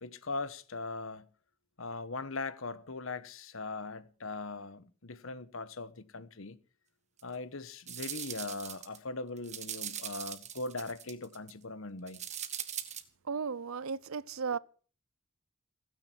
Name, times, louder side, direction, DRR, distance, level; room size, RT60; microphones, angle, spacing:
voice 1, 0.0-1.2 1.8-6.6 7.2-12.2, left 3 dB, 70° left, 1.2 m, -40 dB
sound 1, 7.2-7.3 7.8-9.0 9.4-11.5 12.1-13.0, right 10 dB, 30° right, 1.6 m, -41 dB
voice 2, 13.3-14.6, right 5 dB, 80° right, 0.7 m, -35 dB
17.0 x 15.5 x 4.6 m
head